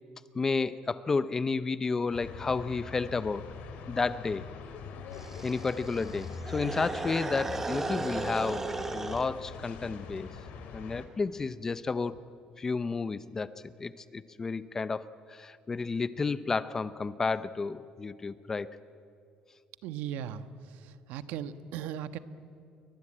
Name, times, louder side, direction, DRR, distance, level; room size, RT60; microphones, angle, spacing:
voice 1, 0.3-3.5 3.9-4.5 5.4-10.3 10.7-12.2 12.6-18.7, left 4 dB, 20° left, 15 dB, 0.6 m, -31 dB
sound 1, 2.1-11.1, left 5 dB, 65° left, 3.6 m, -43 dB
sound 2, 5.1-9.3, right 3 dB, 15° right, 1.2 m, -36 dB
voice 2, 19.8-22.2, right 9 dB, 80° right, 11 dB, 1.3 m, -38 dB
29.0 x 23.5 x 8.8 m, 2.5 s
cardioid pair, 170°, 3 cm